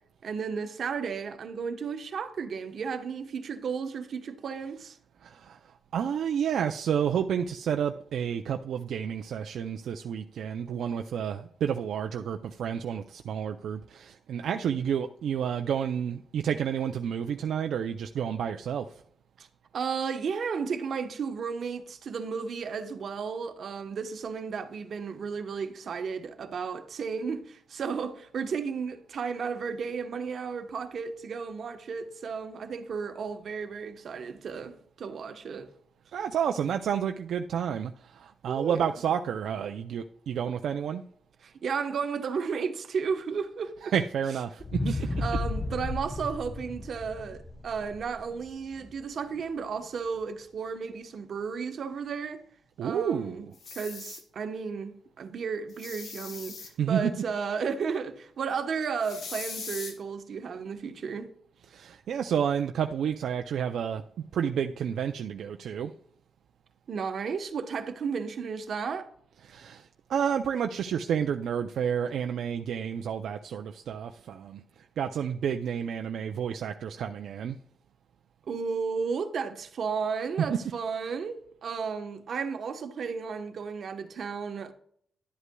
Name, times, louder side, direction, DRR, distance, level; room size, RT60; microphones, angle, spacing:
voice 1, 0.2-5.0 19.4-19.5 19.7-35.7 38.5-38.8 41.4-43.8 44.9-52.4 52.8-53.3 53.7-61.3 66.9-69.1 78.5-84.7, right 5 dB, 65° right, 1.0 m, -33 dB
voice 2, 5.2-19.0 36.1-41.0 43.8-45.2 52.8-53.5 56.8-57.1 61.7-64.0 64.3-65.9 69.4-77.6 80.4-80.6, right 8 dB, 80° right, 0.4 m, -30 dB
sound 1, 44.6-48.9 49.3-49.4, left 2 dB, 20° left, 0.7 m, -33 dB
sound 2, 53.5-54.2 55.7-56.7 59.0-59.9, left 4 dB, 75° left, 1.8 m, -40 dB
11.0 x 8.2 x 2.3 m
cardioid pair, 105°, 0 cm